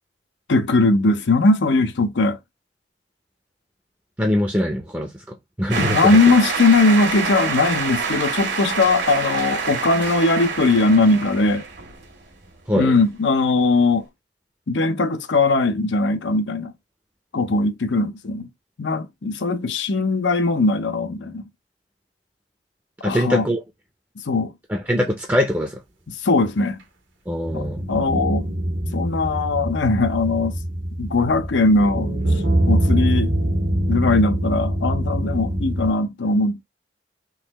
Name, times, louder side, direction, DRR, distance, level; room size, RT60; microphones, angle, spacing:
voice 1, 0.5-2.4 5.8-11.6 12.7-14.1 14.7-16.7 17.3-18.5 18.8-21.4 23.0-23.4 24.3-24.5 26.2-26.8 27.5-28.5 28.9-30.5 31.0-32.1 32.7-33.3 33.9-36.6, left 3 dB, 75° left, 0.6 m, -19 dB
voice 2, 4.2-6.2 12.7-12.9 23.0-23.6 24.7-25.8 27.3-27.8, equal, 10° right, 0.6 m, -23 dB
sound 1, 5.7-12.5, right 5 dB, 70° right, 1.4 m, -26 dB
sound 2, 27.4-35.9, right 1 dB, 90° right, 1.5 m, -23 dB
3.8 x 3.0 x 2.9 m
head